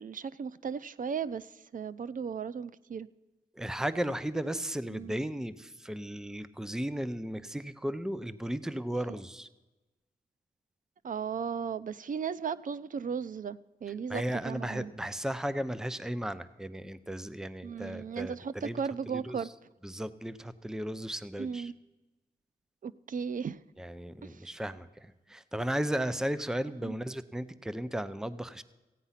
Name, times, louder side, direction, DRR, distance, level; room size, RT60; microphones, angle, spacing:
voice 1, 0.0-3.1 4.9-5.1 11.0-14.9 17.6-19.5 21.4-21.7 22.8-23.6 24.2-24.5 26.8-27.0, right 6 dB, 60° right, 17 dB, 0.5 m, -36 dB
voice 2, 3.5-9.5 14.1-18.8 19.1-19.5 19.8-21.7 23.8-28.6, right 1 dB, 5° right, 14 dB, 0.6 m, -35 dB
15.0 x 9.3 x 5.7 m, 1.1 s
cardioid pair, 75°, 16 cm